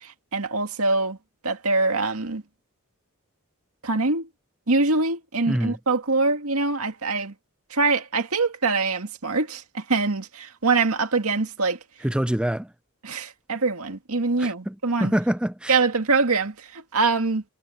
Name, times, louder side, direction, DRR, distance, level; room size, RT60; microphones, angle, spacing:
voice 1, 0.0-1.2 1.4-2.4 3.8-4.3 4.7-7.3 7.7-11.8 13.0-15.1 15.7-17.4, right 3 dB, 80° right, 2.1 m, -24 dB
voice 2, 12.0-12.7 14.4-14.7 15.0-15.8, right 1 dB, 5° right, 0.4 m, -25 dB
head